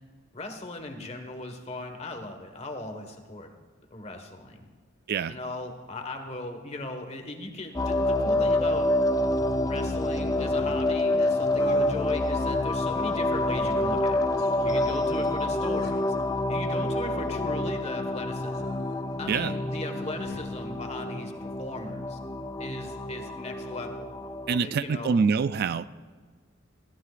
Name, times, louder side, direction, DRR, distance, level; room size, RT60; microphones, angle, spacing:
voice 1, 0.3-3.5 3.9-4.7 5.3-8.9 9.6-14.2 14.6-16.1 16.5-18.7 19.2-22.2 22.6-24.1 24.6-25.2, left 2 dB, 30° left, 5 dB, 1.5 m, -38 dB
sound 1, 7.7-24.6, left 1 dB, 15° left, 0.4 m, -27 dB
sound 2, 10.3-10.9 11.5-12.0 12.8-13.6 14.4-14.8 15.6-16.0 17.1-17.7 18.4-19.0 19.7-20.5, left 3 dB, 50° left, 1.7 m, -43 dB
voice 2, 24.5-25.9, right 5 dB, 50° right, 14 dB, 0.4 m, -25 dB
21.5 x 15.0 x 2.5 m, 1.5 s
head